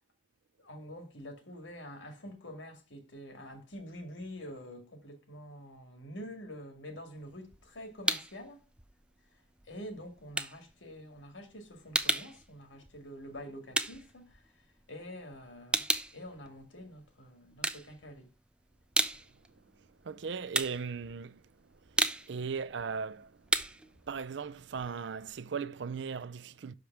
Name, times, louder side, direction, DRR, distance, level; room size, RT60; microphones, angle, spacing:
voice 1, 0.6-8.6 9.6-18.3, equal, 80° left, 2.0 m, -47 dB
sound 1, 7.2-8.5 8.8-15.0 15.3-17.1 17.5-18.4 18.7-25.4, right 2 dB, 5° right, 0.4 m, -34 dB
voice 2, 20.1-21.4 22.3-23.3 24.1-26.7, right 5 dB, 65° right, 0.4 m, -37 dB
6.4 x 5.1 x 5.8 m
head